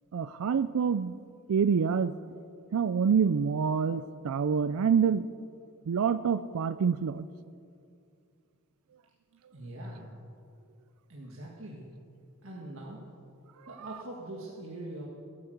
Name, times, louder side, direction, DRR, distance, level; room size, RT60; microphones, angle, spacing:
voice 1, 0.1-1.2 1.5-2.1 2.7-5.3 5.9-7.3, right 6 dB, 90° right, 13 dB, 0.4 m, -26 dB
voice 2, 9.5-10.1 11.1-11.8 12.4-13.0 13.7-15.1, right 1 dB, 65° right, -3 dB, 1.8 m, -42 dB
16.5 x 8.6 x 8.0 m, 2.4 s
head